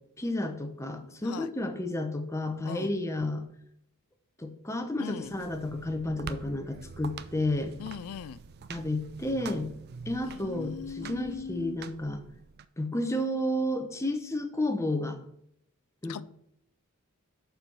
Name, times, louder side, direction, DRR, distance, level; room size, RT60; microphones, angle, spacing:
voice 1, 0.2-3.4 4.4-7.8 8.7-9.7 10.1-12.2 12.8-15.2 16.0-16.2, left 1 dB, 15° left, 5 dB, 0.7 m, -31 dB
voice 2, 5.0-5.3 7.8-8.4 10.3-11.8 16.1-16.2, left 7 dB, 90° left, 16 dB, 0.3 m, -40 dB
sound 1, 5.2-12.6, right 5 dB, 50° right, 0.4 m, -45 dB
6.6 x 4.6 x 5.4 m, 0.73 s
head